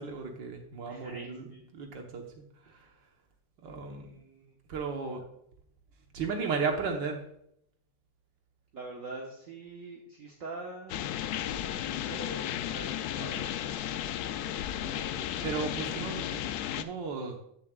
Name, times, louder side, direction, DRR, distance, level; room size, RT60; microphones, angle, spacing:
voice 1, 0.0-1.4 1.7-2.9 3.6-4.1 4.7-5.2 6.1-7.3 14.8-16.4 16.7-17.4, right 5 dB, 85° right, 3 dB, 1.8 m, -35 dB
voice 2, 0.8-1.6 2.8-2.9 3.6-4.6 5.1-5.2 8.7-13.5 15.0-15.9, right 2 dB, 50° right, -1 dB, 1.5 m, -45 dB
sound 1, 10.9-16.8, left 11 dB, 70° left, 1.0 m, -34 dB
15.5 x 7.3 x 2.4 m, 0.71 s
omnidirectional pair, 1.9 m